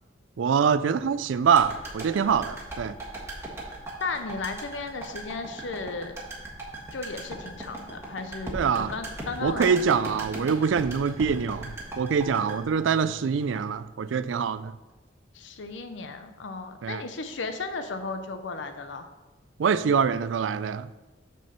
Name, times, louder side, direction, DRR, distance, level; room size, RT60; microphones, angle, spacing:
voice 1, 0.4-2.9 8.5-8.9 9.4-14.7 16.8-17.0 19.6-20.9, right 6 dB, 85° right, 15 dB, 0.4 m, -24 dB
sound 1, 1.5-13.7 14.0-14.1, right 1 dB, 15° right, 1.4 m, -39 dB
voice 2, 4.0-6.2 6.9-9.8 15.3-19.1, left 3 dB, 80° left, 8 dB, 0.6 m, -35 dB
6.2 x 4.5 x 6.6 m, 1.1 s
head